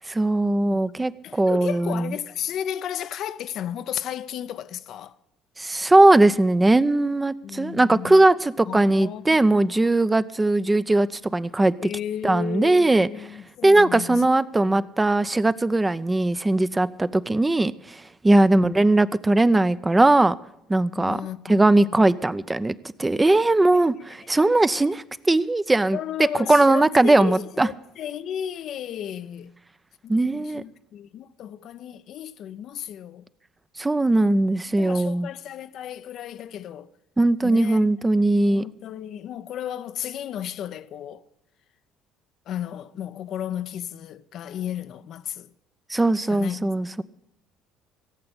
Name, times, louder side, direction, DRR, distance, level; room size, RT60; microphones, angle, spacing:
voice 1, 0.1-2.1 5.6-11.7 12.2-13.1 13.6-20.3 20.7-21.2 21.5-26.0 26.3-27.7 30.1-30.6 33.8-35.3 37.2-38.6 45.9-47.0, right 2 dB, 15° right, 0.5 m, -19 dB
voice 2, 1.2-5.2 7.4-8.2 8.7-9.9 10.2-10.3 11.8-14.3 14.6-14.8 18.5-18.9 20.9-22.0 23.7-23.9 24.3-24.9 25.9-29.6 30.0-33.3 34.1-34.4 34.8-36.9 37.4-37.9 38.2-41.2 42.5-45.5 46.3-46.9, left 10 dB, 55° left, 0.5 m, -34 dB
16.5 x 7.7 x 8.2 m
hypercardioid pair, 55°, 0 cm